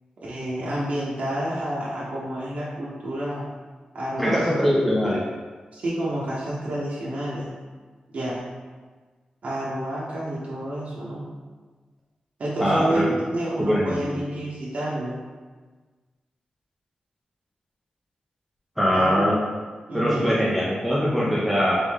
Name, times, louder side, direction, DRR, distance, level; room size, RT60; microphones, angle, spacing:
voice 1, 0.2-3.5 3.9-4.8 5.7-7.5 8.1-8.5 9.4-11.2 12.4-15.2 18.9-19.3 19.9-20.4, right 1 dB, 60° right, -7 dB, 0.9 m, -29 dB
voice 2, 4.2-5.2 12.6-13.0 13.6-14.2 18.8-19.4 19.9-21.8, equal, 5° right, -7 dB, 0.8 m, -22 dB
3.8 x 3.5 x 3.6 m, 1.4 s
cardioid pair, 85°, 3 cm